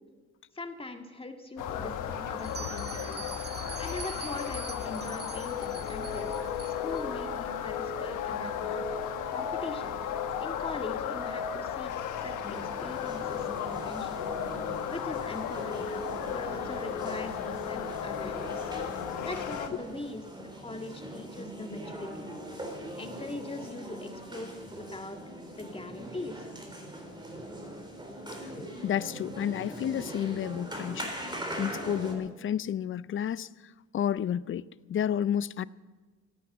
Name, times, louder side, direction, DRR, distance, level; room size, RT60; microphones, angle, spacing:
voice 1, 0.5-3.4 3.8-6.3 6.7-9.0 9.3-10.0 10.4-11.9 12.2-12.4 12.6-14.3 14.6-15.9 16.3-18.7 19.2-22.3 23.0-25.2 25.5-26.5, left 2 dB, 20° left, 1.8 m, -41 dB
sound 1, 1.6-19.7, left 8 dB, 85° left, 1.2 m, -34 dB
Bell, 2.4-7.0, right 6 dB, 35° right, 0.7 m, -44 dB
sound 2, 12.4-32.1, equal, 15° right, 3.8 m, -41 dB
voice 2, 28.6-31.1 31.6-33.5 33.9-35.6, left 9 dB, 45° left, 0.5 m, -31 dB
16.0 x 9.7 x 8.5 m
cardioid pair, 90°, 30 cm